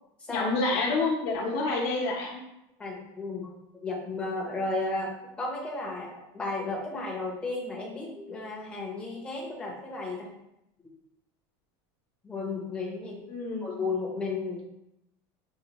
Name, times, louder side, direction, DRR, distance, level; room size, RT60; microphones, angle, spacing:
voice 1, 0.3-2.4 13.3-13.7, left 3 dB, 55° left, -1 dB, 0.9 m, -28 dB
voice 2, 2.8-10.3 12.2-13.2 13.6-14.6, left 3 dB, 10° left, -3 dB, 0.8 m, -34 dB
5.5 x 2.2 x 2.9 m, 0.85 s
supercardioid pair, 150°, 13 cm